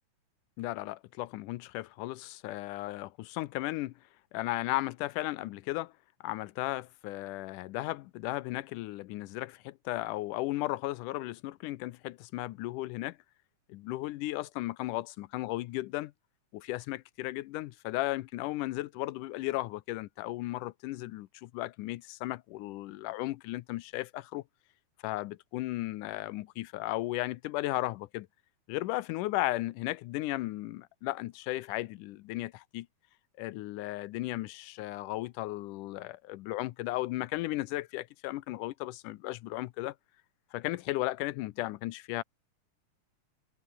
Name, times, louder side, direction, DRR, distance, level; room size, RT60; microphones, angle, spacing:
voice 1, 0.6-3.9 4.3-5.9 6.2-13.2 13.7-16.1 16.5-24.4 25.0-28.3 28.7-32.9 33.4-40.0 40.5-42.2, left 17 dB, 85° left, 2.2 m, -35 dB
omnidirectional pair, 3.7 m